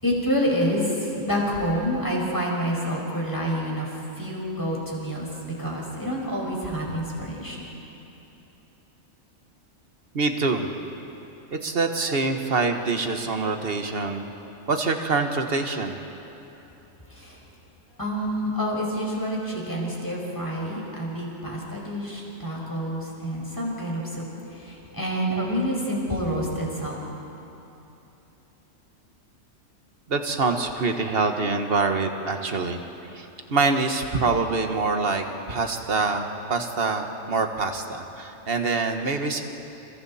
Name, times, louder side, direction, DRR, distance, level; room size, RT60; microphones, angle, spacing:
voice 1, 0.0-5.3 5.6-7.7 17.1-17.4 18.0-24.2 24.5-27.0, equal, 15° left, -3 dB, 5.2 m, -28 dB
voice 2, 10.1-10.7 11.5-14.3 14.7-16.0 30.1-32.8 33.1-39.4, right 3 dB, 45° right, 5 dB, 1.6 m, -25 dB
29.5 x 29.0 x 4.3 m, 3.0 s
omnidirectional pair, 1.4 m